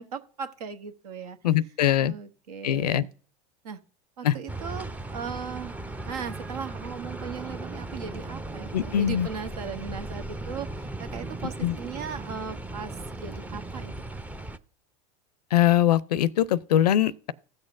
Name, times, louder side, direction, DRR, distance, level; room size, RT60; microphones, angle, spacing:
voice 1, 0.0-1.4 2.0-3.1 3.6-3.8 4.2-5.8 6.0-14.2, right 6 dB, 80° right, 1.1 m, -38 dB
voice 2, 1.4-2.1 2.6-3.0 4.2-4.3 8.7-9.3 11.6-11.8 15.5-17.3, left 11 dB, 85° left, 0.5 m, -22 dB
sound 1, 4.5-14.6, right 2 dB, 5° right, 0.5 m, -37 dB
15.5 x 6.5 x 2.5 m
hypercardioid pair, 95°, 20 cm